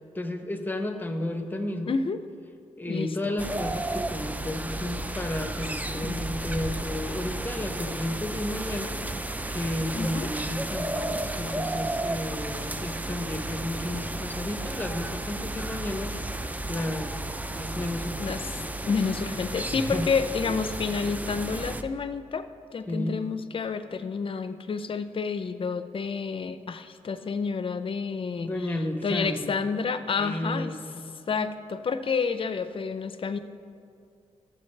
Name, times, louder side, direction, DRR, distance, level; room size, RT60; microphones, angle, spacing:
voice 1, 0.1-1.9 2.8-9.0 9.5-16.2 16.7-17.2 17.5-18.4 19.7-20.1 22.9-23.2 28.4-29.5 30.2-31.0, left 1 dB, 15° left, 5 dB, 0.8 m, -32 dB
voice 2, 1.9-2.2 2.9-3.2 6.0-6.2 9.9-10.3 18.2-18.5 18.9-28.8 29.0-30.8 31.3-33.4, left 5 dB, 45° left, 10 dB, 0.5 m, -29 dB
sound 1, 3.4-21.8, right 2 dB, 15° right, 0.4 m, -33 dB
13.0 x 7.8 x 3.2 m, 2.4 s
cardioid pair, 75°, 12 cm